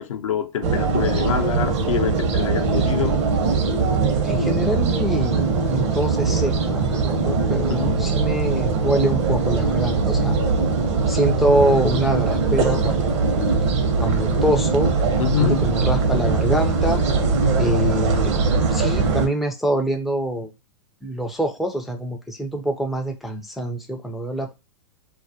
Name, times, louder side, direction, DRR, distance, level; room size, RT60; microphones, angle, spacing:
voice 1, 0.0-3.2 7.7-8.1 15.2-15.6, left 9 dB, 75° left, 0.5 m, -25 dB
sound 1, 0.6-19.3, right 4 dB, 60° right, 0.7 m, -21 dB
voice 2, 4.2-10.4 11.1-13.0 14.0-14.9 15.4-17.0 17.6-18.3 18.7-20.5 21.0-24.5, right 1 dB, ahead, 0.3 m, -24 dB
2.3 x 2.1 x 2.6 m
hypercardioid pair, 115°, 16 cm